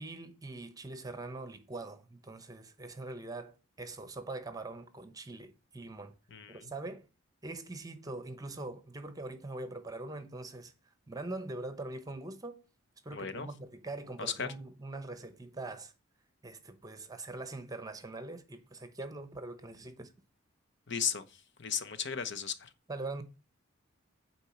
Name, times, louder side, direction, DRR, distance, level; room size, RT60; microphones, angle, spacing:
voice 1, 0.0-6.1 6.5-7.1 7.4-10.7 11.1-12.6 13.0-15.9 16.4-20.1 22.9-23.2, right 2 dB, 20° right, 0.8 m, -42 dB
voice 2, 6.3-6.6 13.1-13.5 14.2-14.5 20.9-21.2 21.6-22.7, left 7 dB, 55° left, 1.0 m, -35 dB
8.9 x 4.5 x 7.2 m
head